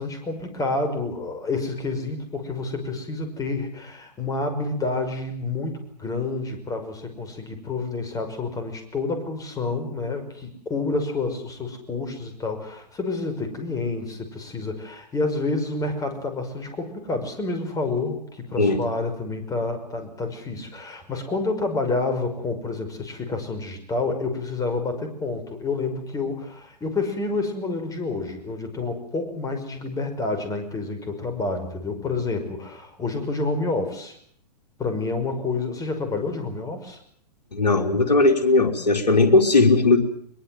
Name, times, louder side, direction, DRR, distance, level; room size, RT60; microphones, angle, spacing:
voice 1, 0.0-34.2 34.8-37.0, left 3 dB, 15° left, 7 dB, 5.7 m, -29 dB
voice 2, 37.5-40.0, left 3 dB, 75° left, 4 dB, 4.0 m, -18 dB
22.5 x 22.5 x 7.9 m, 0.62 s
figure-of-eight pair, 110°, 21 cm